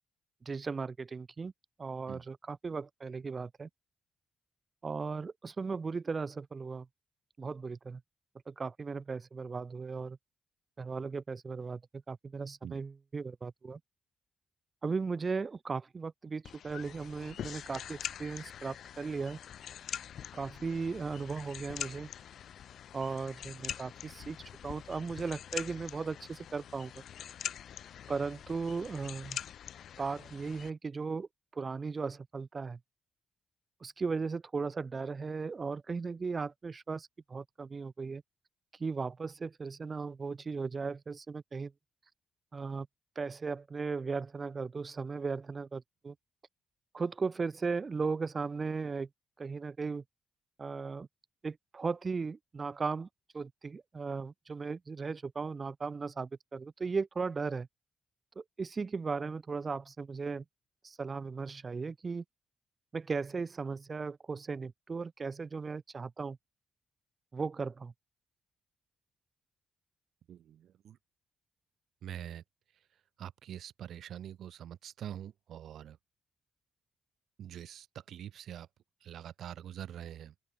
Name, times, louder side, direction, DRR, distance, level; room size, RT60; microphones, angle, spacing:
voice 1, 0.5-1.5 1.8-3.7 4.8-6.9 7.4-8.0 8.5-10.2 10.8-11.8 12.1-13.8 14.8-19.4 20.3-22.1 22.9-24.4 24.6-26.9 28.1-29.4 30.0-31.3 31.5-32.8 33.8-38.2 38.8-41.7 42.5-42.9 43.2-46.1 46.9-49.1 49.4-50.0 50.6-51.1 51.4-53.1 53.3-57.7 58.4-60.4 60.8-62.2 62.9-66.4 67.3-67.9, right 4 dB, 25° right, 4.0 m, -37 dB
sound 1, 16.4-30.7, left 9 dB, 60° left, 3.3 m, -44 dB
voice 2, 70.3-71.0 72.0-72.4 73.2-76.0 77.4-78.7 79.0-80.3, right 10 dB, 70° right, 2.7 m, -45 dB
open air
wide cardioid pair, 165°, 0 cm